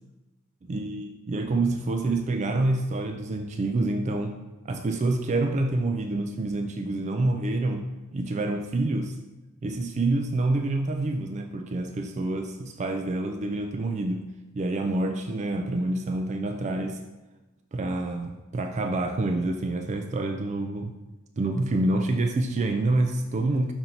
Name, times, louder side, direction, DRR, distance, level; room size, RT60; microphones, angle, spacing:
voice 1, 0.7-4.4 4.6-9.2 9.6-14.3 14.5-17.0 17.7-21.0 21.4-23.7, right 2 dB, 35° right, 5 dB, 0.3 m, -27 dB
5.6 x 4.4 x 3.8 m, 1.1 s
head